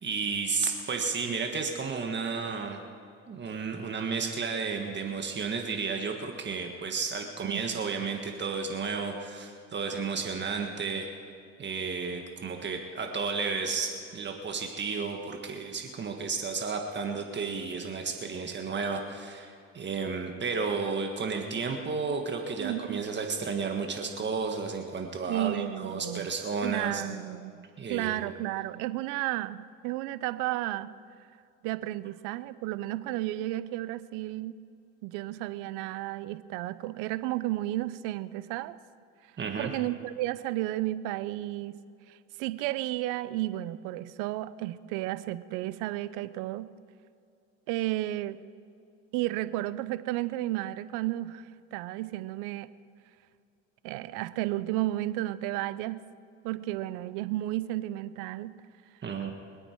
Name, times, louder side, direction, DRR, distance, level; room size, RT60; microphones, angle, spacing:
voice 1, 0.0-2.8 3.3-11.1 11.6-27.0 27.8-28.3 39.4-39.7 59.0-59.3, right 5 dB, 35° right, 3 dB, 1.7 m, -32 dB
voice 2, 7.4-7.8 22.6-23.0 25.3-26.3 26.6-30.9 31.6-34.5 35.0-38.8 39.6-41.8 42.1-46.7 47.7-48.4 49.1-52.7 53.8-56.0 56.4-58.6, right 16 dB, 75° right, 15 dB, 0.7 m, -33 dB
26.0 x 8.8 x 4.6 m, 2.5 s
supercardioid pair, 90°, 32 cm